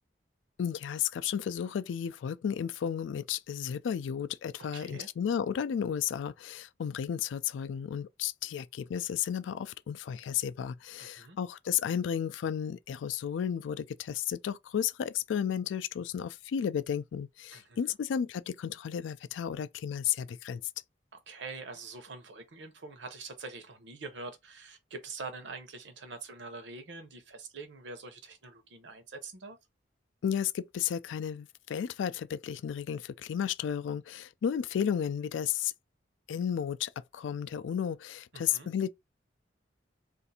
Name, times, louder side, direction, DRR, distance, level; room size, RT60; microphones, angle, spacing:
voice 1, 0.6-20.6 30.2-35.7 36.3-38.9, left 8 dB, 80° left, 0.3 m, -33 dB
voice 2, 4.7-5.1 11.0-11.4 17.5-18.0 21.1-29.6 38.3-38.7, right 3 dB, 70° right, 0.8 m, -44 dB
2.6 x 2.5 x 4.1 m
head